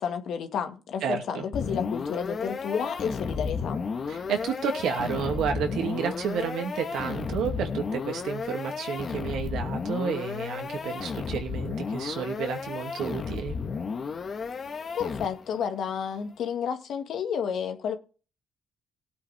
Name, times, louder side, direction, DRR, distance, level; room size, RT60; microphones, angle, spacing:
voice 1, 0.0-3.8 14.9-18.0, left 7 dB, 70° left, 1.8 m, -31 dB
voice 2, 1.0-1.4 4.1-13.6, right 7 dB, 80° right, 2.4 m, -31 dB
sound 1, 1.5-15.6, left 5 dB, 50° left, 1.5 m, -33 dB
18.0 x 8.5 x 3.6 m
cardioid pair, 90°, 0 cm